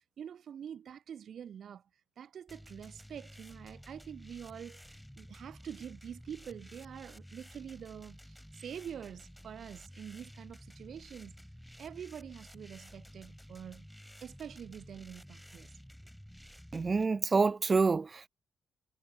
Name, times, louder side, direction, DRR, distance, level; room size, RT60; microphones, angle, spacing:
voice 1, 0.0-1.8 2.2-11.3 11.8-13.9 14.2-15.7, right 8 dB, 60° right, 2.7 m, -46 dB
sound 1, 2.5-17.1, equal, ahead, 5.1 m, -52 dB
voice 2, 16.7-18.3, right 4 dB, 30° right, 0.3 m, -27 dB
cardioid pair, 90°, 0 cm